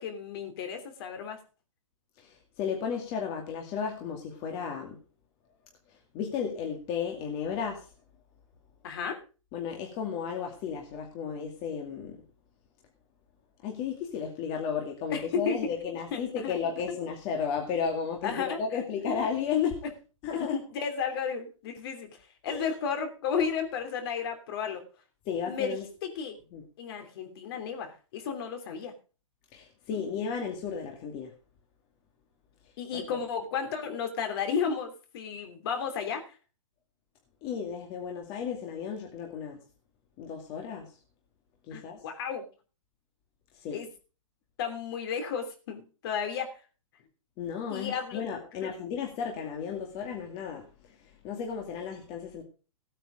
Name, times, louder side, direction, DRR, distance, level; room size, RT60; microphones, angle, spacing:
voice 1, 0.0-1.4 8.8-9.2 15.1-15.8 16.1-16.6 18.2-18.6 19.1-19.2 20.3-24.8 25.5-25.8 26.0-26.4 26.8-28.9 32.8-36.4 41.7-42.5 43.7-43.9 44.6-46.6 47.7-48.2, left 6 dB, 45° left, 6 dB, 3.1 m, -33 dB
voice 2, 2.2-5.0 5.9-7.9 9.5-12.2 13.6-19.8 20.2-20.6 22.5-22.6 25.3-25.9 26.5-26.6 29.5-31.3 32.9-33.2 37.4-39.6 40.2-41.0 41.7-42.0 43.5-43.8 47.4-52.4, left 7 dB, 30° left, 2 dB, 2.3 m, -34 dB
16.0 x 9.0 x 5.0 m, 0.35 s
hypercardioid pair, 155°, 18 cm